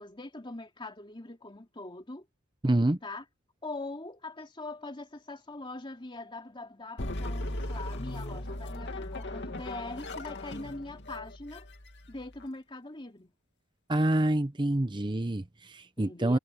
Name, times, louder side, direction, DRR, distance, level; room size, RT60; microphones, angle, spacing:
voice 1, 0.0-2.3 3.0-3.2 3.6-11.7 12.1-13.3 16.0-16.4, left 2 dB, 25° left, 2.8 m, -42 dB
voice 2, 2.6-3.0 13.9-16.4, right 1 dB, 20° right, 0.8 m, -27 dB
sound 1, 7.0-12.5, left 1 dB, 55° left, 2.7 m, -38 dB
head